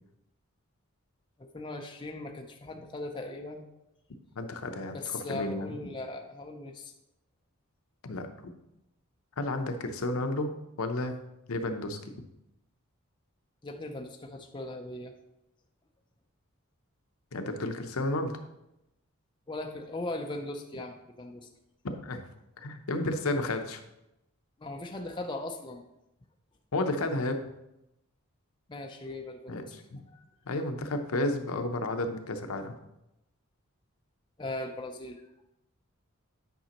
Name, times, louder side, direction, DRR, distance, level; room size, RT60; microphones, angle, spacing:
voice 1, 1.4-3.6 4.9-6.9 13.6-15.1 19.5-21.5 24.6-25.8 28.7-29.7 30.1-30.2 34.4-35.2, left 2 dB, 20° left, 3 dB, 0.5 m, -39 dB
voice 2, 4.4-5.8 8.0-8.3 9.4-10.5 10.8-11.2 11.5-12.1 17.3-18.4 21.8-22.2 22.6-23.8 26.7-27.4 29.5-30.0 30.5-32.7, left 2 dB, 75° left, 6 dB, 0.7 m, -32 dB
9.2 x 5.1 x 2.9 m, 0.88 s
head